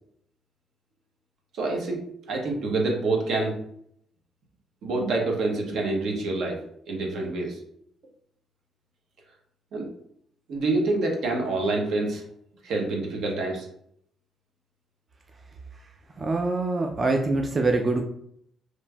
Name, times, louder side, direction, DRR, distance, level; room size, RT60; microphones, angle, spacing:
voice 1, 1.6-2.0 2.3-3.5 4.8-6.6 6.9-7.6 9.7-9.9 10.5-12.2 12.6-13.7, right 2 dB, 75° right, 0 dB, 0.8 m, -26 dB
voice 2, 16.2-18.0, right 3 dB, 35° right, 2 dB, 0.3 m, -24 dB
3.0 x 2.5 x 2.2 m, 0.70 s
cardioid pair, 90°, 0 cm